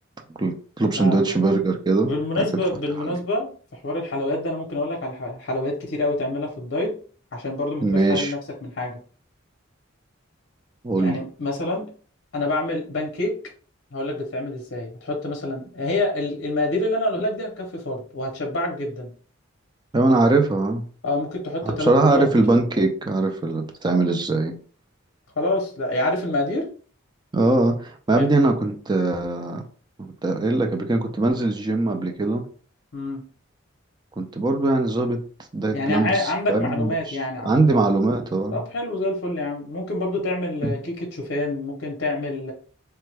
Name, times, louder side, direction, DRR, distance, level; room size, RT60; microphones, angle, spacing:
voice 1, 0.4-2.1 2.4-2.5 3.0-3.2 7.8-8.3 10.8-11.2 19.9-20.8 21.6-24.5 27.3-29.6 30.0-32.5 34.2-35.2 35.5-37.2 37.4-38.6 40.6-40.7, right 2 dB, 20° right, 4 dB, 0.4 m, -21 dB
voice 2, 0.9-1.4 2.0-6.9 7.3-9.0 11.0-11.9 12.3-13.3 13.9-19.1 21.0-22.3 25.4-26.7 28.1-28.3 32.9-33.2 35.7-38.0 38.5-42.5, left 2 dB, 55° left, 0 dB, 0.7 m, -27 dB
3.3 x 2.2 x 3.2 m, 0.42 s
head